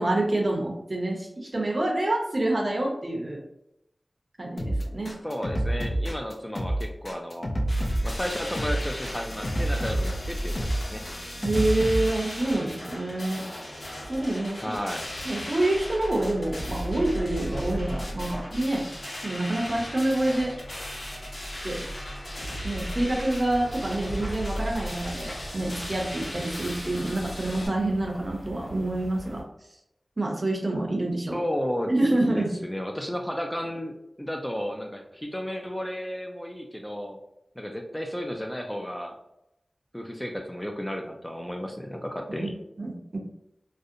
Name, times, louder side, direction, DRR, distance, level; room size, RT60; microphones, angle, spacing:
voice 1, 0.0-3.4 4.4-5.2 11.4-13.4 14.1-14.8 15.2-18.9 19.2-20.5 21.6-21.9 22.6-29.4 30.2-31.4 31.9-32.5 42.4-42.5 42.8-43.2, right 1 dB, 45° right, 0 dB, 0.6 m, -27 dB
sound 1, 4.6-12.3, right 1 dB, 60° left, 0.5 m, -28 dB
voice 2, 5.2-7.5 8.0-11.0 14.6-15.1 31.3-31.9 32.3-37.2 37.6-39.2 39.9-42.5, equal, 10° left, 3 dB, 0.3 m, -33 dB
sound 2, 7.7-27.7, equal, 75° left, 0.9 m, -36 dB
sound 3, 23.4-29.4, right 1 dB, 30° left, 1.1 m, -43 dB
2.5 x 2.0 x 2.6 m, 0.83 s
wide cardioid pair, 45°, 0 cm